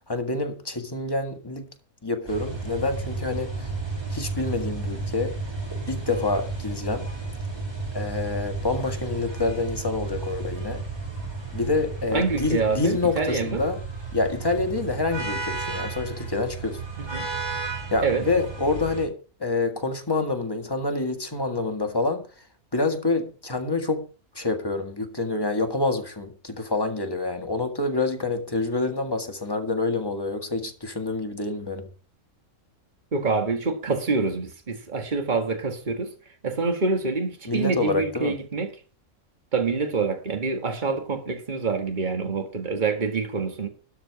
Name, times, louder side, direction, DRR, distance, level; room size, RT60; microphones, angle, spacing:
voice 1, 0.1-1.7 2.0-3.7 4.1-5.3 5.9-7.1 7.9-10.8 11.5-13.8 14.1-16.8 17.9-22.3 22.7-24.1 24.3-31.9 37.5-38.3, left 3 dB, 15° left, 1.7 m, -27 dB
sound 1, 2.3-19.1, right 3 dB, 15° right, 2.7 m, -33 dB
voice 2, 12.1-13.6 17.0-17.3 18.0-18.3 33.1-36.1 36.4-38.7 39.5-43.7, right 4 dB, 35° right, 1.9 m, -26 dB
12.5 x 5.0 x 8.1 m
omnidirectional pair, 1.5 m